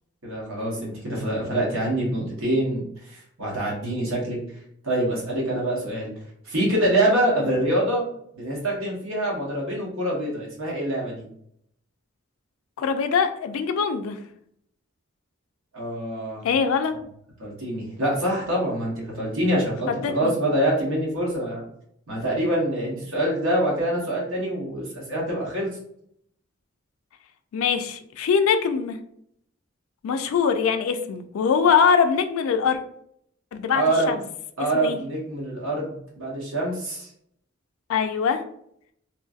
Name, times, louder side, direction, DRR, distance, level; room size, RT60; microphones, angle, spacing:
voice 1, 0.2-4.4 4.8-6.1 6.4-8.1 8.3-11.2 15.7-16.4 17.4-21.6 22.1-25.7 33.7-34.1 34.6-37.1, right 1 dB, 75° right, -3 dB, 1.1 m, -25 dB
voice 2, 12.8-14.2 16.4-16.9 19.9-20.3 27.5-29.0 30.0-32.8 33.5-34.2 34.7-35.0 37.9-38.4, left 6 dB, 75° left, 9 dB, 0.3 m, -22 dB
3.0 x 2.5 x 2.4 m, 0.70 s
head